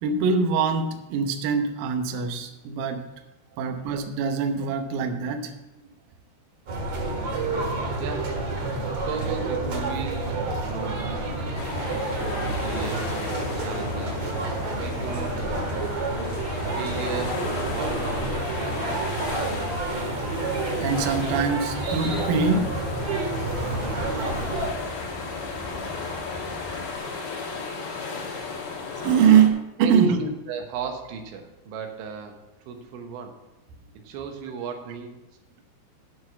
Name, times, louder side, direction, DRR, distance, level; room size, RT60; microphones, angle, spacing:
voice 1, 0.0-3.1 3.6-5.5 13.6-13.7 20.8-22.7 29.0-30.2, right 6 dB, 70° right, 5 dB, 2.2 m, -23 dB
sound 1, 6.7-24.7, right 2 dB, 50° right, 2.1 m, -29 dB
voice 2, 8.0-8.4 9.1-11.1 12.2-13.2 13.6-14.3 14.8-15.6 16.7-19.1 29.8-32.4 32.7-33.4 34.0-35.1, right 5 dB, 90° right, 4 dB, 3.5 m, -35 dB
sound 2, 11.5-29.5, left 4 dB, 75° left, 4.2 m, -35 dB
sound 3, 20.7-26.9, left 1 dB, 10° left, 1.6 m, -40 dB
9.1 x 6.3 x 7.1 m, 0.96 s
omnidirectional pair, 5.0 m